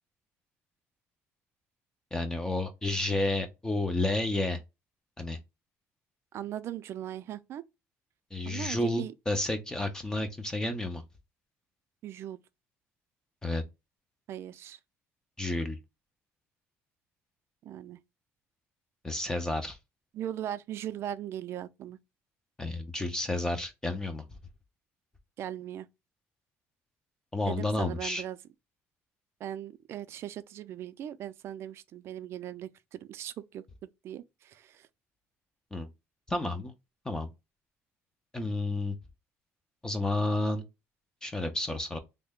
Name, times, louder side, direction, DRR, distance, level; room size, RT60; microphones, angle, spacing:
voice 1, 2.1-4.6 5.2-5.4 8.3-11.0 13.4-13.6 15.4-15.8 19.0-19.8 22.6-24.2 27.3-28.2 35.7-35.9 36.3-36.7 37.1-37.3 38.3-38.9 39.8-40.6 41.2-42.0, left 2 dB, 10° left, 0.5 m, -31 dB
voice 2, 6.3-7.6 8.4-9.1 12.0-12.4 14.3-14.8 17.6-18.0 20.1-22.0 25.4-25.9 27.4-28.4 29.4-33.6 34.0-34.9, right 11 dB, 55° right, 0.4 m, -39 dB
3.2 x 2.1 x 3.5 m
cardioid pair, 140°, 5 cm